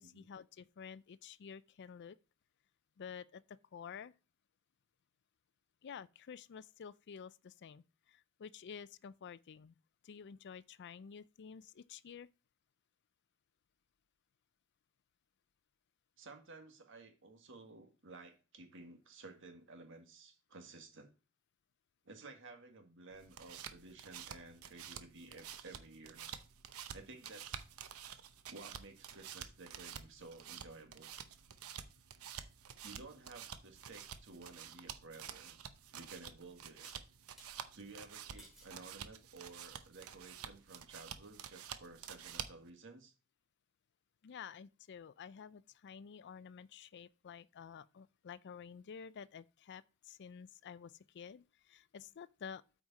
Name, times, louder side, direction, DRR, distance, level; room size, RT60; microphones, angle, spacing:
voice 1, 0.0-2.2 3.0-4.1 5.8-9.7 10.0-12.3 44.2-52.6, left 7 dB, 55° left, 0.4 m, -51 dB
voice 2, 16.2-21.1 22.1-26.3 26.9-27.7 28.5-31.1 32.8-35.6 35.9-36.9 37.7-43.1, right 3 dB, 60° right, 1.7 m, -54 dB
sound 1, 23.1-42.7, right 8 dB, 90° right, 0.8 m, -50 dB
sound 2, 36.8-37.5 38.4-38.8 39.4-39.8, equal, ahead, 2.7 m, -60 dB
8.4 x 5.0 x 4.1 m
head